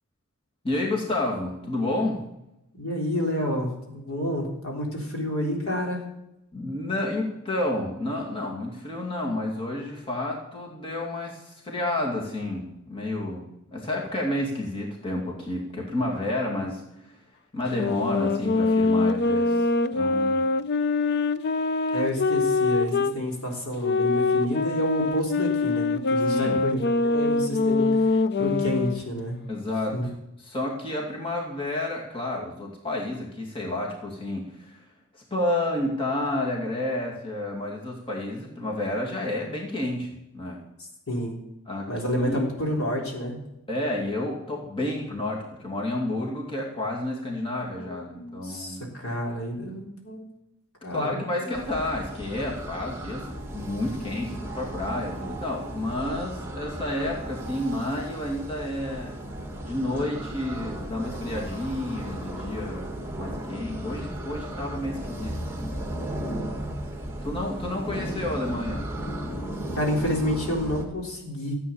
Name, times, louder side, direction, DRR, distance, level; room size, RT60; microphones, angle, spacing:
voice 1, 0.6-2.2 6.5-17.2 17.5-20.4 26.3-26.6 29.5-30.1 30.4-34.9 35.1-40.6 41.7-41.9 42.2-42.4 43.7-48.8 50.9-59.1 59.6-62.9 63.1-65.9 67.2-68.9, left 1 dB, 25° left, -2 dB, 2.4 m, -30 dB
voice 2, 2.7-6.0 21.9-29.4 29.9-30.1 41.1-41.4 41.9-43.4 47.6-50.2 50.8-51.2 69.8-71.5, equal, 70° left, 0 dB, 3.7 m, -29 dB
sound 1, 17.7-23.2 23.8-29.0, left 3 dB, 50° left, 0.6 m, -24 dB
sound 2, 51.5-70.8, right 1 dB, 10° right, 1.9 m, -35 dB
14.0 x 8.3 x 7.1 m, 0.87 s
head